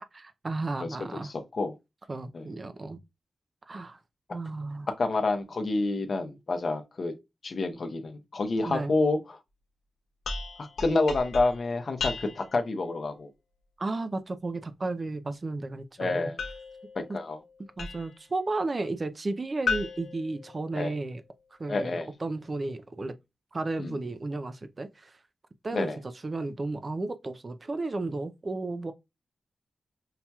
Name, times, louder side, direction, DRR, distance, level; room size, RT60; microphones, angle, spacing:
voice 1, 0.1-1.3 2.1-3.0 3.7-4.0 4.3-4.9 8.6-8.9 13.8-16.3 17.1-17.2 17.8-21.2 21.6-23.1 23.5-25.2 25.6-25.9 26.2-28.9, right 2 dB, 35° right, 0.4 m, -33 dB
voice 2, 0.8-1.7 2.3-2.5 5.0-7.1 7.4-9.4 10.6-13.3 16.0-16.4 16.9-17.4 20.7-20.9 21.7-22.1 23.8-24.0 25.7-26.0, left 3 dB, 50° left, 0.8 m, -28 dB
sound 1, 10.2-12.6 16.4-18.3 19.7-21.1, left 4 dB, 90° left, 1.0 m, -36 dB
5.6 x 2.8 x 2.3 m
wide cardioid pair, 110°, 0 cm